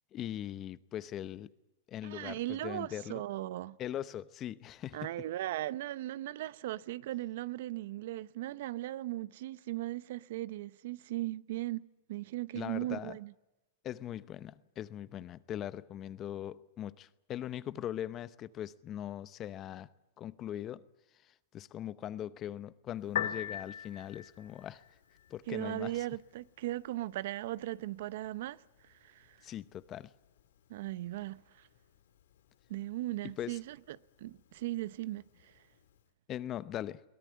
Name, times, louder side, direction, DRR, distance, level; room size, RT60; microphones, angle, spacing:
voice 1, 0.1-1.5 1.9-3.2 3.8-5.1 12.5-13.2 13.8-19.9 20.2-20.9 21.2-24.8 25.3-26.1 29.4-30.1 33.4-33.6 36.3-37.0, left 11 dB, 30° left, 0.8 m, -40 dB
voice 2, 2.0-3.8 4.9-11.8 12.1-13.3 25.5-29.5 30.7-31.7 32.7-35.6, right 15 dB, 65° right, 0.7 m, -38 dB
Piano, 23.0-36.0, left 9 dB, 80° left, 2.0 m, -46 dB
22.5 x 17.5 x 9.4 m
hypercardioid pair, 130°, 0 cm